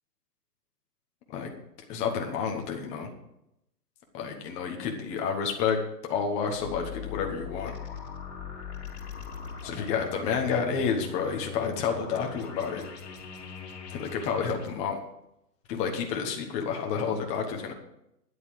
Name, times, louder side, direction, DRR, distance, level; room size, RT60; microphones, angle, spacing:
voice 1, 1.9-3.1 4.1-5.8 6.1-7.7 9.6-12.8 13.9-15.0 15.7-17.7, left 6 dB, 15° left, 2 dB, 1.1 m, -30 dB
sound 1, 6.6-14.7, left 7 dB, 45° left, 3.4 m, -41 dB
10.0 x 8.2 x 7.6 m, 0.82 s
hypercardioid pair, 160°, 48 cm